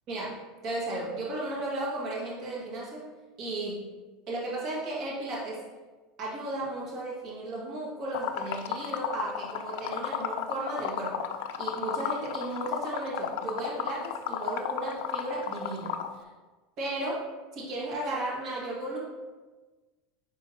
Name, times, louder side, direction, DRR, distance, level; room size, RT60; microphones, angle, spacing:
voice 1, 0.1-3.1 3.4-3.8 4.3-5.6 6.2-11.3 11.6-16.0 16.8-17.3 17.5-19.0, right 2 dB, 40° right, -5 dB, 1.8 m, -34 dB
Liquid, 8.1-16.1, left 10 dB, 65° left, 0.4 m, -33 dB
9.4 x 3.7 x 2.8 m, 1.3 s
supercardioid pair, 160°, 0 cm